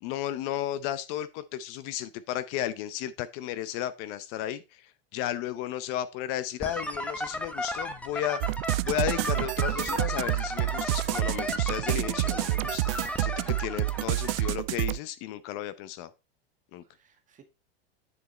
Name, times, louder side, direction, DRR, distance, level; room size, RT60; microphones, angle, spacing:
voice 1, 0.0-8.4 8.8-16.1 16.7-16.8, left 12 dB, 45° left, 0.7 m, -34 dB
sound 1, 6.6-14.5, left 1 dB, 5° left, 0.8 m, -35 dB
sound 2, 8.4-15.0, right 19 dB, 65° right, 0.4 m, -29 dB
voice 2, 13.4-14.2 16.8-17.4, right 8 dB, 25° right, 1.6 m, -56 dB
9.8 x 4.8 x 4.2 m
supercardioid pair, 140°, 31 cm